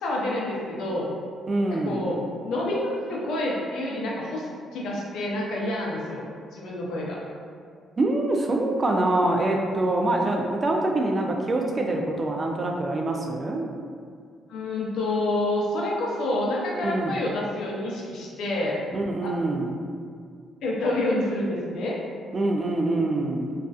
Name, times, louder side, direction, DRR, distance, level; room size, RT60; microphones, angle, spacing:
voice 1, 0.0-1.1 1.7-6.2 6.5-7.2 14.5-18.8 19.2-19.3 20.6-22.0, left 1 dB, 80° left, -3 dB, 0.5 m, -28 dB
voice 2, 1.5-2.0 8.0-13.7 16.8-17.2 18.9-19.7 22.3-23.5, right 2 dB, 35° right, 2 dB, 0.3 m, -25 dB
2.4 x 2.3 x 2.3 m, 2.2 s
cardioid pair, 90°, 0 cm